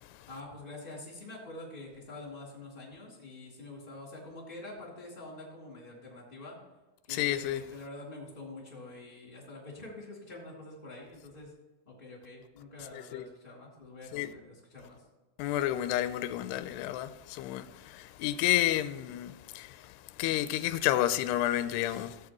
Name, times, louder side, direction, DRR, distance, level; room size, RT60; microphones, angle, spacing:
voice 1, 0.3-6.6 7.0-11.5 11.9-15.0, left 2 dB, 15° left, 2.3 m, -46 dB
voice 2, 7.1-7.6 13.1-13.3 14.1-14.3 15.4-19.9 20.2-22.2, left 13 dB, 80° left, 2.4 m, -30 dB
14.5 x 8.9 x 3.0 m
omnidirectional pair, 5.1 m